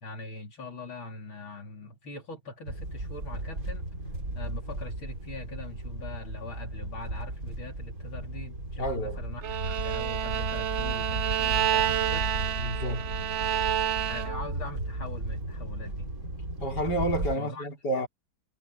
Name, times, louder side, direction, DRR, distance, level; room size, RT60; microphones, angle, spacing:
voice 1, 0.0-3.9 4.3-12.3 14.1-16.1 17.4-17.7, left 2 dB, 75° left, 4.2 m, -42 dB
sound 1, 2.7-17.4, right 1 dB, 40° right, 5.6 m, -35 dB
voice 2, 8.8-9.2 12.6-13.1 16.6-18.1, right 1 dB, 55° left, 5.1 m, -30 dB
Bowed string instrument, 9.4-14.6, right 10 dB, 85° right, 0.6 m, -29 dB
omnidirectional pair, 2.2 m